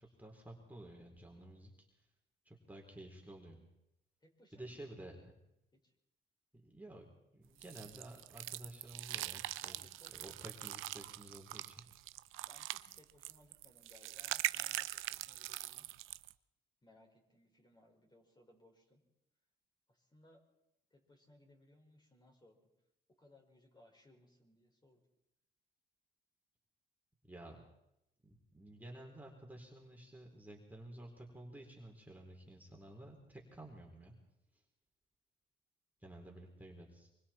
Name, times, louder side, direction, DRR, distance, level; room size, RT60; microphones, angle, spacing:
voice 1, 0.0-1.9 2.4-3.6 4.5-5.1 6.6-7.1 7.3-9.8 10.1-11.8 27.2-27.6 28.2-34.1 36.0-37.1, right 1 dB, 10° right, -1 dB, 4.1 m, -52 dB
voice 2, 4.2-5.1 5.7-5.9 9.6-10.1 12.4-15.9 16.8-19.0 19.9-20.4 20.9-22.6 23.2-25.0, left 1 dB, 20° left, 1 dB, 5.5 m, -65 dB
sound 1, 7.6-16.3, right 15 dB, 90° right, 0.7 m, -42 dB
24.5 x 24.0 x 4.5 m, 0.84 s
cardioid pair, 90°, 20 cm